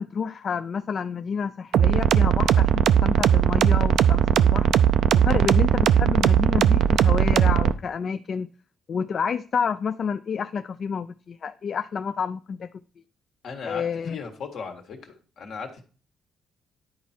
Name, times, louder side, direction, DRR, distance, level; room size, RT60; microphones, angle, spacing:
voice 1, 0.0-4.7 5.2-8.5 8.9-12.7 13.6-14.2, left 6 dB, 50° left, 11 dB, 0.3 m, -29 dB
sound 1, 1.7-7.7, right 9 dB, 75° right, 0.4 m, -19 dB
voice 2, 13.4-15.8, left 5 dB, 70° left, 4 dB, 1.6 m, -37 dB
10.0 x 4.6 x 4.3 m, 0.38 s
cardioid pair, 90°, 0 cm